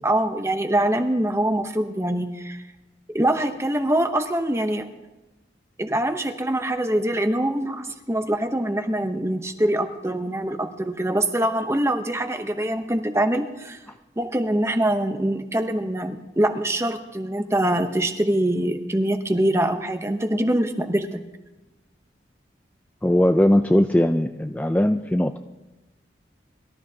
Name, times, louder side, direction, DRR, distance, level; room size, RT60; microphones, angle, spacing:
voice 1, 0.0-2.6 3.1-4.9 5.8-13.8 14.2-21.2, right 1 dB, 15° right, 8 dB, 0.8 m, -24 dB
voice 2, 23.0-25.4, left 1 dB, 10° left, 6 dB, 0.3 m, -19 dB
23.0 x 13.0 x 2.8 m, 1.1 s
head